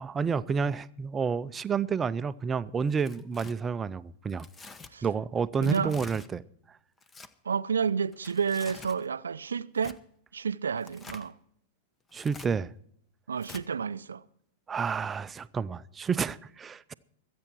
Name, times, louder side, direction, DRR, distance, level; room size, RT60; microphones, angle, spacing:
voice 1, 0.0-4.5 5.0-6.4 12.1-12.7 14.7-16.9, right 6 dB, 20° right, 0.6 m, -30 dB
Tearing, 2.9-3.5 4.4-4.9 5.6-6.3 7.0-7.3 8.1-9.0 9.8-10.0 10.8-11.3 12.1-12.5 13.4-13.6, left 4 dB, 20° left, 1.0 m, -47 dB
voice 2, 5.6-5.9 7.5-10.0 10.3-11.3 13.3-14.2, right 6 dB, 80° right, 0.5 m, -30 dB
23.5 x 8.7 x 4.6 m
hypercardioid pair, 100°, 0 cm